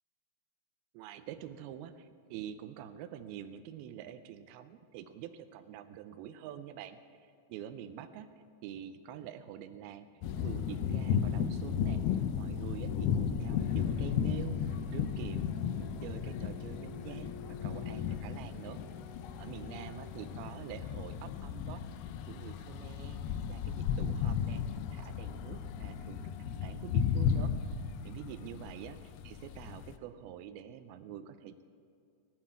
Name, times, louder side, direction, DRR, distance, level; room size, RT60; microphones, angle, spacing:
voice 1, 0.9-8.3 8.6-15.5 15.8-18.8 19.4-21.9 22.3-24.7 24.9-26.3 26.6-27.6 28.0-31.6, right 10 dB, 85° right, 9 dB, 2.5 m, -46 dB
sound 1, 10.2-30.0, left 7 dB, 85° left, 2.6 m, -34 dB
sound 2, 13.6-20.5, left 6 dB, 70° left, 2.1 m, -49 dB
18.0 x 7.5 x 8.4 m, 2.5 s
omnidirectional pair, 4.4 m